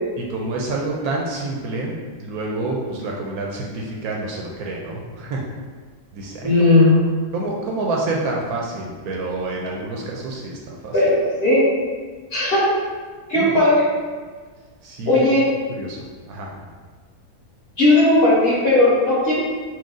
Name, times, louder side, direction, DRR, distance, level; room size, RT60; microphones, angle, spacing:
voice 1, 0.3-5.5 6.1-6.5 7.3-10.9 13.3-13.6 14.8-15.2 15.8-16.0 16.3-16.5, right 2 dB, 70° right, -2 dB, 1.0 m, -28 dB
voice 2, 6.4-6.9 10.9-11.6 12.3-12.7 13.3-13.9 15.1-15.4 17.8-19.3, left 2 dB, 40° left, -9 dB, 1.3 m, -16 dB
4.5 x 2.2 x 3.6 m, 1.5 s
omnidirectional pair, 1.7 m